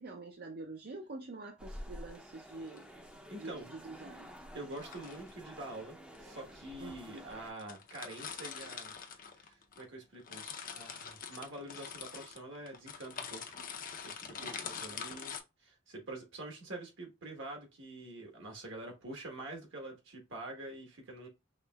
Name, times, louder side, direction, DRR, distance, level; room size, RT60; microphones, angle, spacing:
voice 1, 0.0-2.8 3.3-4.3 6.8-7.2 13.6-13.7 14.4-15.2, right 2 dB, 50° right, 0.5 m, -47 dB
sound 1, 1.6-7.5, equal, 5° right, 0.6 m, -50 dB
sound 2, 2.5-2.8 4.6-5.3 6.2-6.3 7.0-7.1 7.3-7.4 7.6-9.9 10.1-15.4, left 7 dB, 45° left, 0.6 m, -44 dB
voice 2, 3.3-3.7 4.5-13.6 14.0-15.3 15.6-21.3, right 2 dB, 65° right, 1.3 m, -46 dB
5.0 x 3.1 x 2.3 m
head